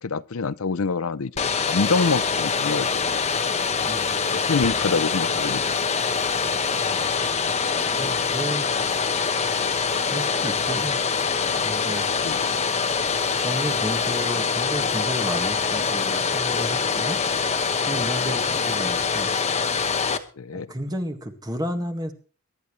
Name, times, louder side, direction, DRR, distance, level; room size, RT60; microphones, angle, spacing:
voice 1, 0.0-3.1 4.3-5.6 12.2-12.5 18.3-18.4 20.4-20.7, left 4 dB, 70° left, 0.6 m, -26 dB
Domestic sounds home sounds, 1.4-20.2, left 5 dB, 30° left, 1.2 m, -24 dB
voice 2, 3.8-4.2 6.4-9.6 9.9-11.0 11.6-12.0 13.4-17.2 17.5-19.3 20.5-22.1, equal, 20° right, 1.9 m, -33 dB
23.0 x 12.0 x 3.3 m
head